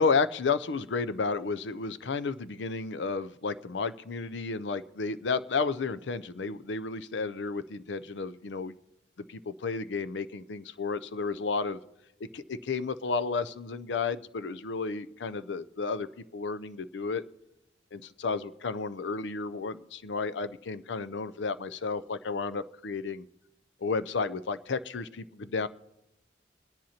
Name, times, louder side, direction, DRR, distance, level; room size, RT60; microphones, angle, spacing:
voice 1, 0.0-8.8 9.2-11.8 12.2-17.2 17.9-23.3 23.8-25.7, left 4 dB, 75° left, 15 dB, 0.5 m, -32 dB
23.5 x 10.5 x 2.9 m, 0.92 s
head